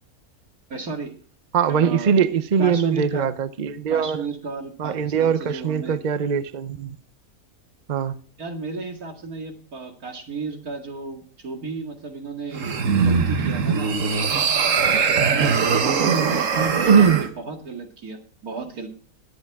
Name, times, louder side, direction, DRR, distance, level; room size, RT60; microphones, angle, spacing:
voice 1, 0.7-1.1 1.7-2.3 2.6-3.3 3.9-6.0 8.4-13.9 15.3-18.9, right 4 dB, 85° right, 2.6 m, -34 dB
voice 2, 1.5-4.2 4.8-7.0 7.9-8.2 16.8-17.2, right 7 dB, 40° right, 0.7 m, -21 dB
sound 1, 12.5-17.3, right 5 dB, 65° right, 1.4 m, -21 dB
21.0 x 8.0 x 3.5 m
omnidirectional pair, 1.5 m